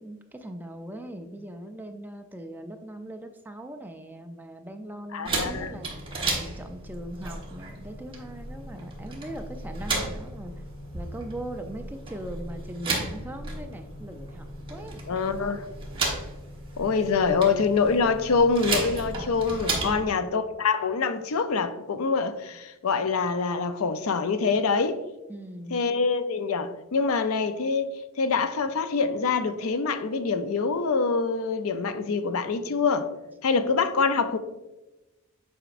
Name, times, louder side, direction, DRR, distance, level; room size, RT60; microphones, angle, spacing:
voice 1, 0.0-10.5 10.9-15.0 19.8-20.2 25.3-25.8, right 1 dB, 10° right, 0.4 m, -40 dB
voice 2, 5.1-5.7 15.1-15.6 16.8-25.0 25.7-27.9 28.2-33.1 33.4-34.4, left 4 dB, 70° left, 0.5 m, -25 dB
sound 1, 5.2-20.0, right 2 dB, 25° right, 1.2 m, -34 dB
7.8 x 5.0 x 2.5 m
head